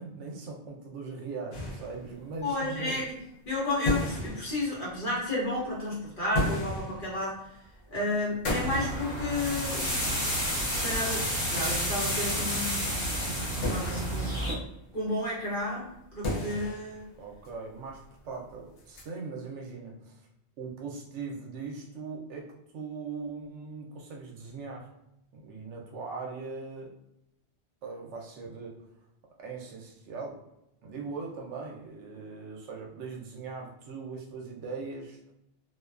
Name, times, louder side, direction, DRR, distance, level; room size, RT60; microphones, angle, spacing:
voice 1, 0.0-3.1 17.2-20.3 20.6-24.9 25.3-26.9 27.8-28.8 29.4-30.4 30.8-35.3, right 4 dB, 75° right, 0 dB, 0.8 m, -40 dB
sound 1, 1.5-2.7 3.5-3.6 3.8-5.1 6.1-7.8 8.4-10.0 10.3-10.4 12.0-12.1 12.5-12.6 13.6-14.8 15.8-15.9 16.1-17.1 17.4-17.5 17.9-18.0 18.8-19.0, left 1 dB, 75° left, 1.0 m, -34 dB
voice 2, 2.4-3.1 3.5-7.4 7.9-10.3 10.7-13.0 13.7-14.6 14.9-17.1, left 2 dB, 45° left, -6 dB, 1.1 m, -32 dB
sound 2, 8.6-14.5, equal, 25° right, 1.1 m, -30 dB
2.5 x 2.2 x 2.3 m, 0.82 s
omnidirectional pair, 1.3 m